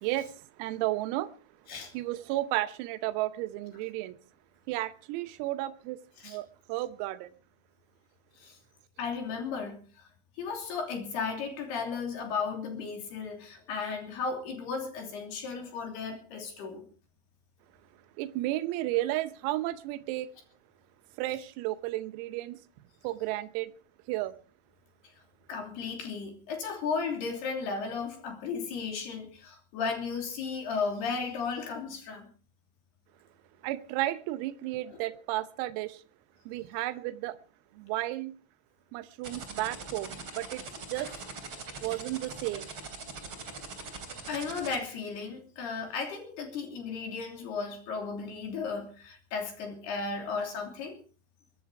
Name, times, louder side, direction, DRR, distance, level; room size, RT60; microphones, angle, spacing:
voice 1, 0.0-1.3 1.9-4.2 4.7-6.0 6.2-7.3 18.2-20.3 21.2-22.6 23.0-23.7 24.1-24.3 33.6-36.0 36.5-37.4 37.8-38.3 38.9-40.6 40.9-41.1 41.8-42.7, right 16 dB, 85° right, 3.7 m, -33 dB
voice 2, 9.0-10.1 10.4-16.8 25.5-32.3 34.9-35.0 41.0-41.2 44.3-51.0, left 5 dB, 55° left, 4.6 m, -35 dB
sound 1, 39.2-44.8, right 4 dB, 30° right, 3.3 m, -41 dB
23.0 x 11.0 x 4.8 m
omnidirectional pair, 6.0 m